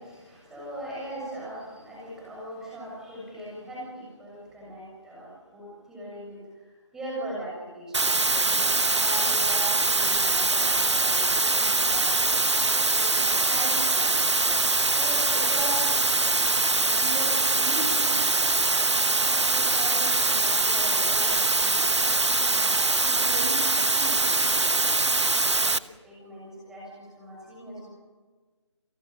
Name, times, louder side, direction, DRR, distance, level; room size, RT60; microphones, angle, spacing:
voice 1, 0.0-12.1 12.5-12.7 12.9-14.3 14.8-15.9 16.7-18.5 18.8-27.9, right 1 dB, 5° right, -5 dB, 7.0 m, -40 dB
sound 1, 7.9-25.8, right 3 dB, 70° right, 1.0 m, -23 dB
29.0 x 19.0 x 7.4 m, 1.4 s
figure-of-eight pair, 155°, 15 cm